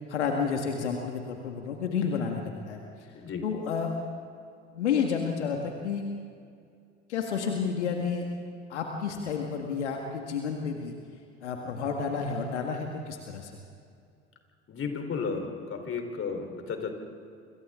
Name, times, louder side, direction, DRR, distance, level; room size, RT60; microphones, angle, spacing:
voice 1, 0.1-2.8 3.4-3.9 4.7-6.0 7.1-8.3 8.7-10.9 11.4-13.6, left 6 dB, 80° left, 2 dB, 1.9 m, -30 dB
voice 2, 14.7-16.9, left 5 dB, 40° left, 5 dB, 4.0 m, -33 dB
29.0 x 26.5 x 3.8 m, 2.4 s
hypercardioid pair, 65°, 34 cm